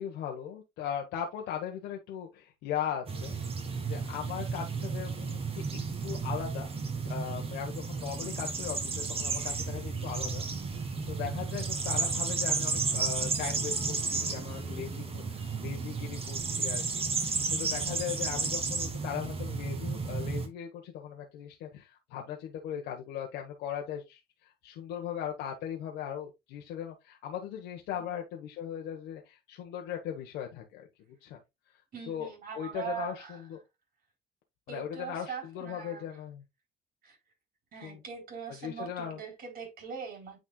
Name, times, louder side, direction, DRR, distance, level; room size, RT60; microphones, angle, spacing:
voice 1, 0.0-3.3 3.8-6.8 7.0-10.4 10.8-30.9 31.2-31.4 32.1-32.3 32.5-33.6 34.7-36.4 37.8-38.0 38.6-39.2, left 9 dB, 90° left, 1.3 m, -38 dB
sound 1, 3.1-20.5, right 4 dB, 35° right, 1.8 m, -33 dB
voice 2, 31.9-33.4 34.7-36.1 37.0-37.2 37.7-40.4, right 7 dB, 60° right, 4.3 m, -41 dB
9.1 x 4.4 x 2.3 m
cardioid pair, 110°, 17 cm